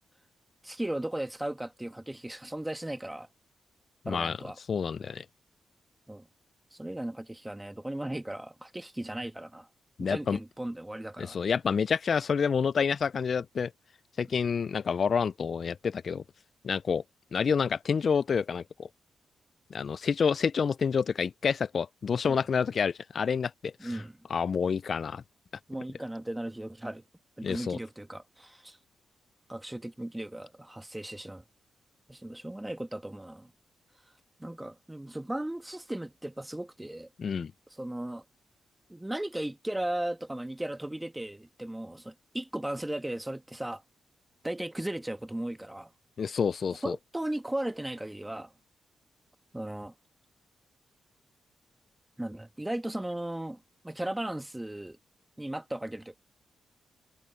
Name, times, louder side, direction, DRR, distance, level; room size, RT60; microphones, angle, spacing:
voice 1, 0.6-3.3 4.1-4.6 6.1-6.3 6.7-9.7 10.0-11.4 14.2-14.3 22.2-22.4 23.8-24.2 25.7-27.0 27.4-28.8 29.5-31.4 32.1-33.5 34.4-37.1 37.7-38.2 38.9-43.8 44.4-45.9 46.8-48.5 49.5-49.9 52.2-55.0 55.4-56.2, right 1 dB, 10° right, 1.6 m, -36 dB
voice 2, 4.1-4.4 4.7-5.2 10.0-10.4 11.2-13.7 14.2-16.2 16.6-17.0 17.3-18.6 19.7-23.7 24.3-25.2 27.4-27.8 37.2-37.5 46.2-47.0, left 6 dB, 60° left, 0.4 m, -28 dB
cardioid pair, 60°, 0 cm